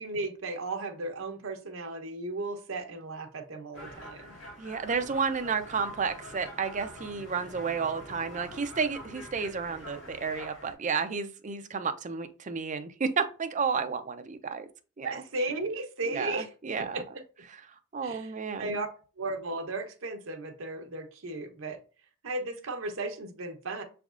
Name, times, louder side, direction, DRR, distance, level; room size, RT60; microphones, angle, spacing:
voice 1, 0.0-4.3 15.0-16.5 16.8-17.2 18.0-18.3 18.6-18.9 19.2-21.8 22.2-23.8, right 2 dB, 60° right, 0.9 m, -35 dB
sound 1, 3.7-10.7, equal, 65° left, 1.8 m, -45 dB
voice 2, 4.6-14.7 15.0-15.2 16.1-17.0 17.9-18.8, right 5 dB, 35° right, 0.4 m, -32 dB
6.2 x 3.4 x 2.4 m
head